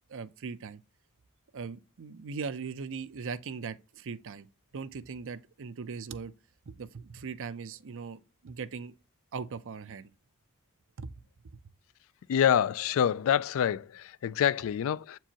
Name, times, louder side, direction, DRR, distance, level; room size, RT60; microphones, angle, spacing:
voice 1, 0.1-0.8 1.5-4.5 4.7-6.3 6.7-8.9 9.3-10.1 11.0-11.1, right 5 dB, 60° right, 0.5 m, -39 dB
voice 2, 12.3-15.2, left 9 dB, 65° left, 0.3 m, -26 dB
7.8 x 4.5 x 2.9 m
head